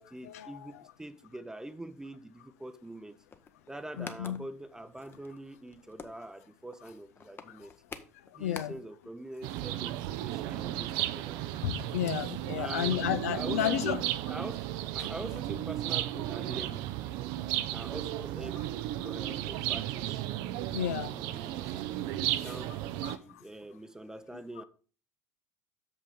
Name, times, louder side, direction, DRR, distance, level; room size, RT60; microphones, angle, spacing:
voice 1, 0.0-3.2 3.7-7.7 8.3-11.4 12.6-14.6 14.9-16.9 17.7-18.7 19.0-20.2 21.1-21.8 22.2-24.6, right 1 dB, 5° right, 0.7 m, -44 dB
sound 1, 3.2-9.1 9.3-9.4 9.6-9.8, left 5 dB, 25° left, 0.9 m, -48 dB
voice 2, 4.0-4.4 8.3-8.7 11.6-14.0 15.0-15.1 20.5-21.1 23.0-23.4, left 11 dB, 70° left, 0.6 m, -32 dB
sound 2, 9.4-23.2, right 14 dB, 55° right, 0.5 m, -34 dB
7.0 x 5.6 x 5.0 m
figure-of-eight pair, 65°, 8 cm